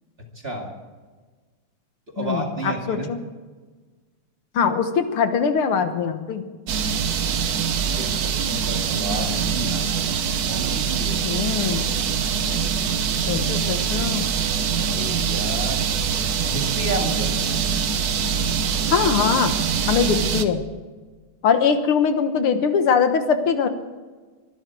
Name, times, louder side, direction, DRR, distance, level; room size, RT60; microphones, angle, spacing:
voice 1, 0.2-0.7 2.2-3.1 8.0-10.0 10.5-11.2 14.7-15.8 16.5-17.4, right 2 dB, 30° right, 1 dB, 2.2 m, -31 dB
voice 2, 2.2-3.2 4.6-6.4 11.2-11.8 13.3-14.3 18.9-19.5 19.9-20.6 21.4-23.7, left 6 dB, 85° left, 8 dB, 2.1 m, -22 dB
sound 1, 6.7-20.4, right 6 dB, 55° right, 1.2 m, -24 dB
22.5 x 12.0 x 4.7 m, 1.4 s
omnidirectional pair, 2.3 m